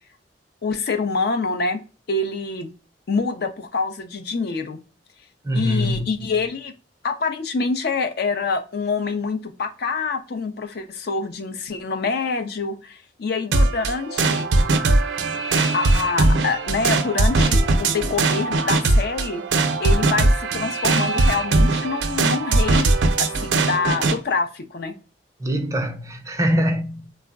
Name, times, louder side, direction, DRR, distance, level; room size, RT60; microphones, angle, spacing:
voice 1, 0.6-1.8 2.1-2.7 3.1-4.8 5.5-6.7 7.0-14.5 15.7-19.4 19.8-22.9 23.2-24.9, left 4 dB, 60° left, 0.5 m, -26 dB
voice 2, 5.4-6.1 25.4-27.1, equal, 20° right, 0.4 m, -23 dB
sound 1, 13.5-24.2, right 2 dB, 90° right, 0.5 m, -20 dB
3.4 x 2.0 x 2.2 m
head